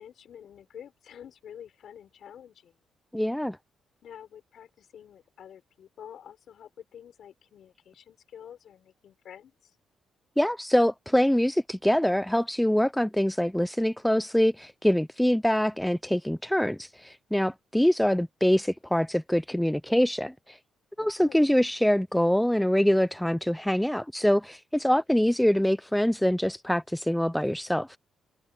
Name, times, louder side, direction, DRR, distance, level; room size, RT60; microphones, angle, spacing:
voice 1, 0.0-2.8 4.0-9.8 21.2-21.4, left 9 dB, 50° left, 6.4 m, -48 dB
voice 2, 3.1-3.6 10.4-20.6 21.0-28.0, equal, ahead, 0.4 m, -24 dB
cardioid pair, 180°, 0 cm